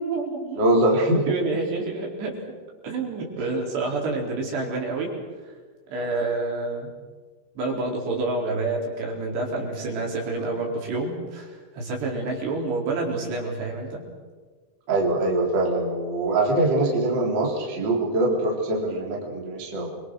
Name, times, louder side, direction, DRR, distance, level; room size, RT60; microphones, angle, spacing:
voice 1, 0.0-0.6 1.1-2.4 2.8-5.1 5.4-5.5 5.9-6.9 7.6-14.0, right 3 dB, 65° right, -1 dB, 6.4 m, -28 dB
voice 2, 0.6-1.2 5.9-6.1 14.9-20.0, right 2 dB, 25° right, -2 dB, 3.9 m, -23 dB
29.5 x 24.5 x 6.4 m, 1.5 s
omnidirectional pair, 5.3 m